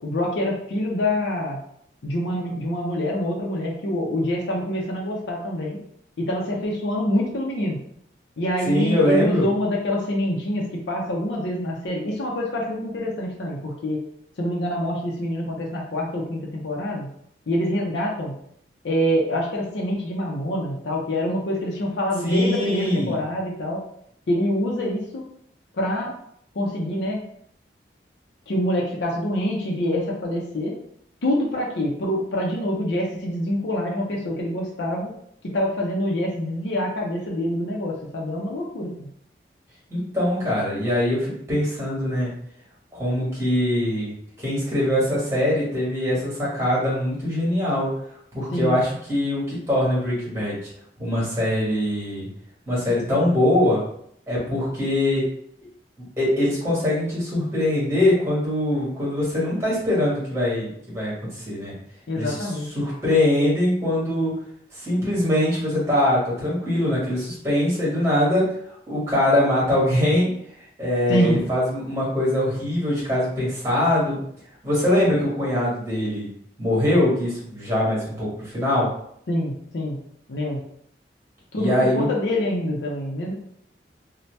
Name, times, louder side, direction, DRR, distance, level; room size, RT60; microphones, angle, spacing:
voice 1, 0.0-1.6 2.0-5.8 6.2-7.8 8.4-14.0 14.4-17.1 17.5-18.3 18.8-23.8 24.3-25.2 25.8-26.1 26.5-27.2 28.5-30.7 31.2-35.1 35.5-39.1 48.5-48.8 62.1-62.7 71.1-71.4 79.3-80.0 80.3-80.6 81.5-83.3, left 1 dB, 75° left, -2 dB, 0.5 m, -25 dB
voice 2, 8.7-9.4 22.2-23.2 39.9-42.3 42.9-44.1 44.4-47.9 48.3-50.7 51.0-52.3 52.7-53.8 54.3-55.3 56.2-61.7 62.1-64.3 64.7-70.3 70.8-74.2 74.6-76.3 76.6-78.9 81.6-82.1, left 1 dB, 15° right, -6 dB, 1.3 m, -22 dB
2.7 x 2.1 x 3.2 m, 0.68 s
head